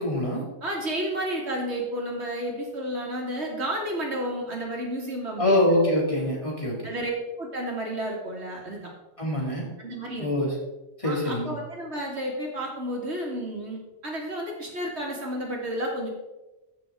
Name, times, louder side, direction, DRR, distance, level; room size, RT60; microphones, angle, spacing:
voice 1, 0.0-0.4 5.4-6.9 9.2-9.6 10.2-10.5 11.0-11.5, left 1 dB, 25° left, -3 dB, 2.6 m, -24 dB
voice 2, 0.6-5.6 6.8-7.1 7.4-8.9 9.8-10.3 11.0-16.1, equal, 65° right, -1 dB, 2.5 m, -31 dB
15.0 x 6.2 x 3.7 m, 1.0 s
omnidirectional pair, 1.2 m